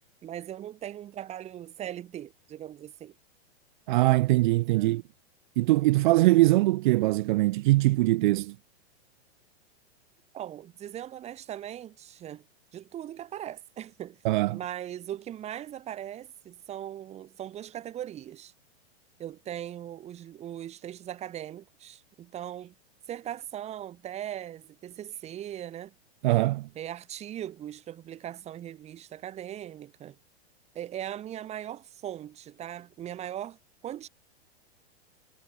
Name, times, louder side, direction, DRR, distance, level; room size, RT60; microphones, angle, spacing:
voice 1, 0.2-3.2 4.7-5.0 10.3-12.4 12.7-14.2 14.5-18.5 19.2-22.7 23.1-25.9 26.8-30.2 30.7-34.1, right 11 dB, 20° right, 5.6 m, -39 dB
voice 2, 3.9-5.0 5.6-8.6 14.2-14.6 26.2-26.7, right 18 dB, 45° right, 2.7 m, -22 dB
supercardioid pair, 165°, 33 cm